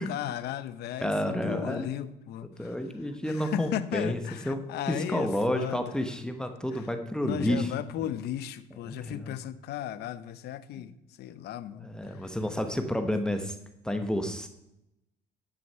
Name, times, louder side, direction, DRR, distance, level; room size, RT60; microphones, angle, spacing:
voice 1, 0.0-2.8 3.3-5.9 6.7-6.8 7.2-12.3, left 11 dB, 75° left, 14 dB, 0.7 m, -36 dB
voice 2, 1.0-1.9 2.6-4.2 4.4-7.7 8.0-8.1 8.9-9.4 11.8-13.6 13.8-14.5, equal, 5° left, 6 dB, 1.0 m, -30 dB
11.0 x 6.5 x 5.6 m, 0.87 s
cardioid pair, 110°, 17 cm